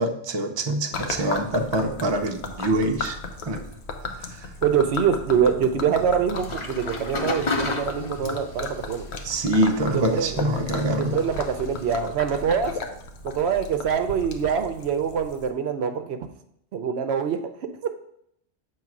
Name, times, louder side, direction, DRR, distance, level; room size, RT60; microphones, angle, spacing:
voice 1, 0.0-3.2 3.4-3.6 4.3-4.5 9.2-11.2, right 1 dB, 30° right, 4 dB, 0.5 m, -25 dB
Gurgling / Liquid, 0.9-15.5, left 3 dB, 65° left, 1.0 m, -35 dB
voice 2, 4.6-9.1 9.9-10.4 11.0-12.8 13.2-16.3 16.7-17.9, right 7 dB, 70° right, 8 dB, 0.8 m, -24 dB
sound 1, 6.3-12.0, left 3 dB, 30° left, 0.6 m, -33 dB
7.6 x 3.1 x 5.9 m, 0.74 s
omnidirectional pair, 1.2 m